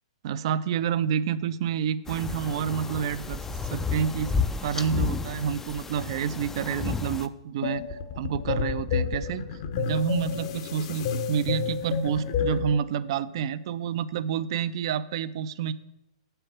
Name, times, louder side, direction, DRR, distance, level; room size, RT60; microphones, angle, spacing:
voice 1, 0.2-3.4 3.7-15.7, right 8 dB, 60° right, 16 dB, 0.5 m, -29 dB
sound 1, 2.1-7.3, left 5 dB, 10° left, 0.4 m, -31 dB
sound 2, 7.6-12.8, left 6 dB, 55° left, 1.0 m, -30 dB
7.0 x 6.7 x 5.9 m, 0.94 s
hypercardioid pair, 120°, 3 cm